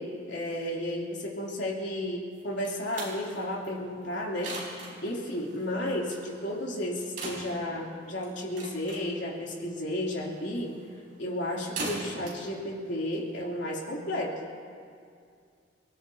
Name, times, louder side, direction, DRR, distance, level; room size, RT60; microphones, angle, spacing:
voice 1, 0.0-4.6 5.0-10.8 11.2-14.4, left 1 dB, 75° left, -3 dB, 3.1 m, -33 dB
sound 1, 2.3-13.8, right 2 dB, 45° right, 4.6 m, -42 dB
29.5 x 16.0 x 2.8 m, 2.3 s
head